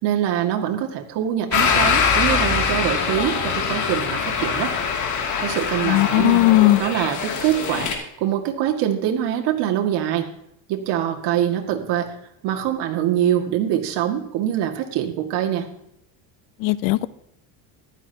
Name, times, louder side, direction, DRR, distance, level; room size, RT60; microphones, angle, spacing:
voice 1, 0.0-4.7 5.4-6.4 6.8-7.9 8.2-10.3 10.7-12.2 12.4-15.7, right 11 dB, 70° right, 3 dB, 2.1 m, -24 dB
sound 1, 1.5-8.0, left 6 dB, 45° left, 2.6 m, -23 dB
voice 2, 5.9-6.8 16.6-17.1, left 18 dB, 85° left, 18 dB, 0.7 m, -17 dB
15.0 x 12.0 x 2.9 m, 0.77 s
cardioid pair, 130°, 42 cm